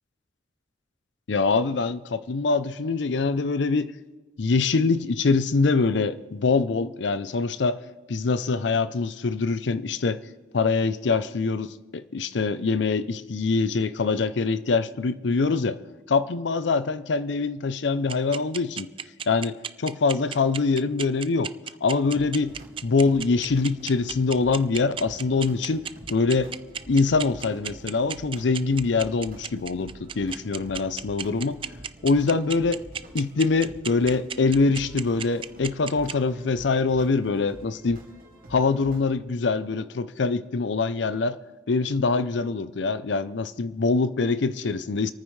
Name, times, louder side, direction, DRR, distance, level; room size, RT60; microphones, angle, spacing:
voice 1, 1.3-3.9 4.4-7.8 8.1-10.2 10.5-15.8 16.1-18.9 19.3-21.5 21.8-22.5 22.8-26.5 26.9-31.6 32.0-32.8 33.1-38.0 38.5-41.4 41.7-45.1, left 4 dB, 75° left, 0.6 m, -24 dB
sound 1, 18.1-36.1, right 8 dB, 30° right, 0.3 m, -33 dB
sound 2, 22.1-39.1, right 1 dB, 50° right, 2.6 m, -47 dB
28.0 x 9.5 x 3.2 m
head